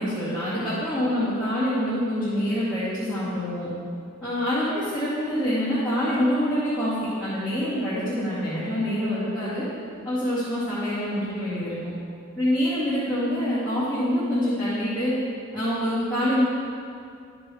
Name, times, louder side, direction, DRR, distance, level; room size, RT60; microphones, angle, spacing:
voice 1, 0.0-3.7 4.2-9.7 10.0-11.9 12.4-15.1 15.5-16.4, equal, 5° left, -14 dB, 2.2 m, -26 dB
13.0 x 6.0 x 3.4 m, 2.4 s
head